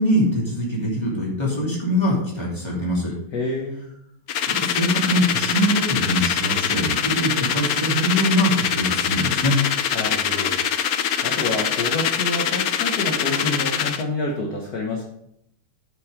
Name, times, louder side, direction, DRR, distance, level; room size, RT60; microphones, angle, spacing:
voice 1, 0.0-3.1 4.5-9.6, equal, 10° left, -5 dB, 3.0 m, -23 dB
voice 2, 3.3-3.8 9.9-10.6 11.2-15.0, left 2 dB, 50° left, 0 dB, 1.6 m, -28 dB
sound 1, 4.3-14.0, left 8 dB, 75° left, 0.8 m, -23 dB
11.0 x 5.4 x 5.1 m, 0.75 s
omnidirectional pair, 2.4 m